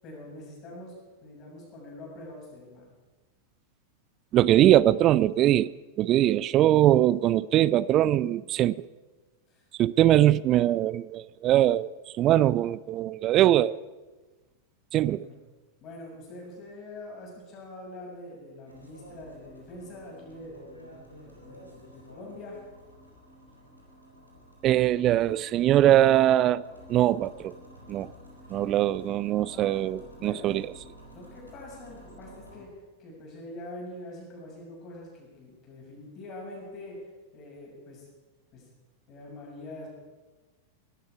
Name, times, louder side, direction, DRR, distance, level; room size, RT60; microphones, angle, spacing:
voice 1, 0.0-0.9 1.2-2.9 9.5-9.6 15.1-15.4 15.8-21.0 21.5-22.6 28.5-28.6 29.3-29.8 30.2-30.6 31.1-32.7 33.0-37.0 37.3-38.1 38.5-38.7 39.1-39.9, left 1 dB, 35° left, 7.1 m, -44 dB
voice 2, 4.3-5.7 6.0-8.9 9.8-11.9 12.2-13.8 14.9-15.3 24.6-26.6 26.9-27.5 27.9-28.1 28.5-30.6, right 13 dB, 35° right, 0.4 m, -22 dB
sound 1, 18.7-32.6, equal, 90° right, 4.1 m, -51 dB
20.0 x 12.5 x 4.9 m
figure-of-eight pair, 90°, 0 cm